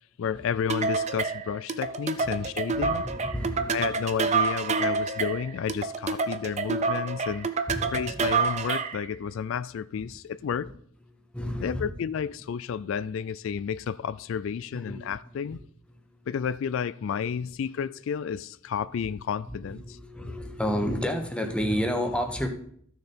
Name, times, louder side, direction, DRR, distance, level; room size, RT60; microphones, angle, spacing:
voice 1, 0.2-3.0 3.7-7.5 7.9-10.7 11.6-15.6 16.3-20.0, left 7 dB, 65° left, 0.3 m, -31 dB
sound 1, 0.7-9.0, right 4 dB, 30° right, 0.6 m, -28 dB
voice 2, 2.7-3.9 7.7-8.4 11.1-11.8 14.8-15.0 15.5-15.6 15.9-16.2 17.4-17.5 19.5-22.5, equal, 5° left, 1.1 m, -31 dB
14.0 x 6.6 x 4.4 m
head